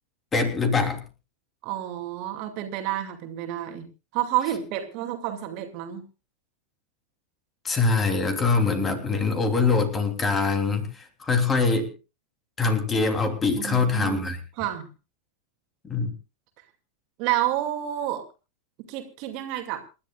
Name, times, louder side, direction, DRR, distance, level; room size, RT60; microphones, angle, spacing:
voice 1, 0.3-1.0 7.6-11.9 12.6-14.4 15.8-16.1, left 4 dB, 20° left, 6 dB, 3.3 m, -23 dB
voice 2, 1.6-3.9 4.1-6.0 13.6-14.2 14.6-14.9 17.2-18.2 18.9-19.8, right 13 dB, 45° right, 5 dB, 2.4 m, -29 dB
28.5 x 11.5 x 2.4 m, 0.31 s
figure-of-eight pair, 90°, 0 cm